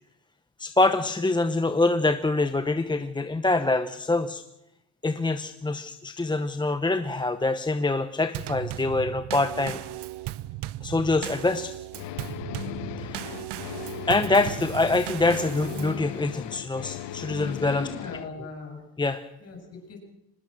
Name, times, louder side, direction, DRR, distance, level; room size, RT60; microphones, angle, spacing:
voice 1, 0.6-4.4 5.0-9.8 10.8-11.7 13.0-13.3 14.1-17.9 19.0-19.2, left 2 dB, 10° left, 9 dB, 0.8 m, -25 dB
Drum kit / Snare drum / Bass drum, 8.3-16.0, right 16 dB, 80° right, 0.8 m, -36 dB
sound 1, 11.9-18.3, left 14 dB, 85° left, 1.1 m, -37 dB
voice 2, 17.7-18.9 19.4-20.0, left 4 dB, 35° left, 1 dB, 7.9 m, -39 dB
24.5 x 19.5 x 6.3 m, 0.85 s
cardioid pair, 140°, 40 cm